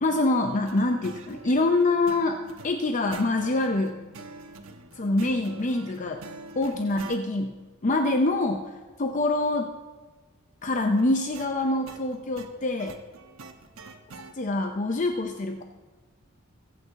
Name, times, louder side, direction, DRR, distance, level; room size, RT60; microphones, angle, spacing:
voice 1, 0.0-4.0 5.0-6.2 6.6-8.7 9.0-9.7 10.6-13.0 14.3-15.6, left 2 dB, 35° left, 5 dB, 0.6 m, -25 dB
sound 1, 0.7-7.2 11.0-14.3, right 3 dB, 80° right, 1.1 m, -44 dB
22.0 x 8.6 x 4.0 m, 1.3 s
head